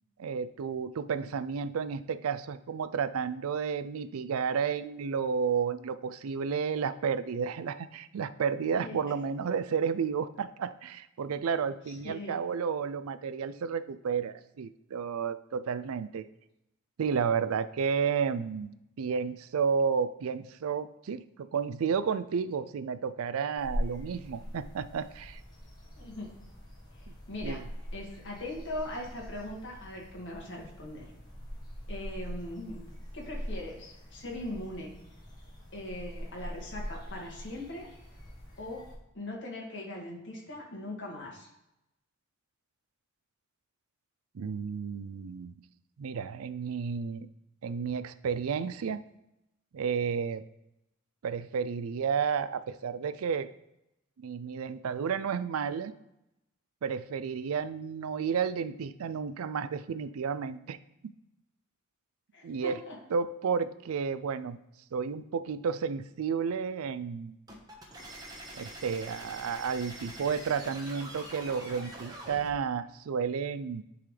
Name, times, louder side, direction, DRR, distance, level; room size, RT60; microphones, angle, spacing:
voice 1, 0.2-16.3 17.0-25.4 27.4-27.6 44.3-45.5 46.0-47.3 47.6-49.0 49.7-50.4 51.2-53.5 54.2-55.9 56.8-60.8 61.0-61.1 62.4-62.8 63.1-64.6 64.9-67.4 68.5-73.8, right 6 dB, 80° right, 13 dB, 0.4 m, -32 dB
voice 2, 11.9-12.4 26.0-26.3 27.3-27.6 27.9-31.1 31.9-32.9 33.1-34.9 35.7-37.9 38.6-38.9 39.1-41.5 62.3-63.0, left 1 dB, 55° left, -2 dB, 1.9 m, -40 dB
sound 1, 23.6-39.0, equal, 20° left, 1.4 m, -42 dB
sound 2, 67.5-72.5, right 1 dB, 20° right, 1.1 m, -45 dB
10.5 x 3.9 x 3.2 m, 0.86 s
head